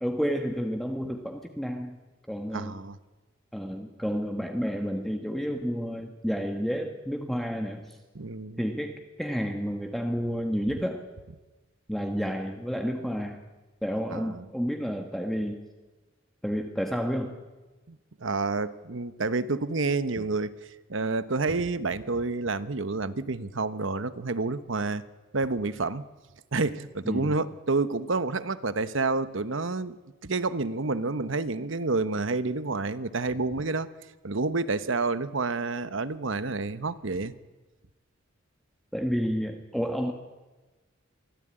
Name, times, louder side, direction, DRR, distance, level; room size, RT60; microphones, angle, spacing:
voice 1, 0.0-2.0 2.3-2.8 3.5-7.8 8.6-11.0 11.9-13.4 13.8-15.6 16.4-17.3 20.2-20.3 27.0-27.3 38.9-40.1, equal, ahead, 3 dB, 1.4 m, -30 dB
voice 2, 2.5-3.0 8.1-8.6 10.7-10.8 14.1-14.5 17.9-20.5 20.9-25.0 25.3-26.0 26.5-33.9 34.2-37.3, right 3 dB, 75° right, 13 dB, 1.1 m, -29 dB
24.0 x 15.0 x 8.9 m, 1.2 s
head